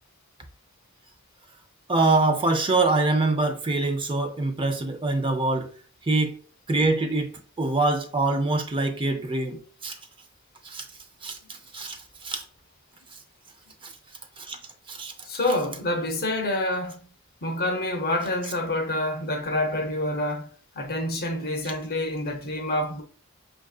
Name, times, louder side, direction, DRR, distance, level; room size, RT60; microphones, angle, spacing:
voice 1, 1.9-5.7 6.1-6.4 6.7-9.9 10.6-10.8 11.2-11.4 11.7-12.0 12.2-12.4 14.4-14.6 14.9-15.1, right 2 dB, 25° right, 0.5 m, -24 dB
voice 2, 15.2-17.0 17.4-20.5 20.8-23.0, left 1 dB, 45° left, 0.7 m, -27 dB
6.3 x 2.6 x 2.3 m
head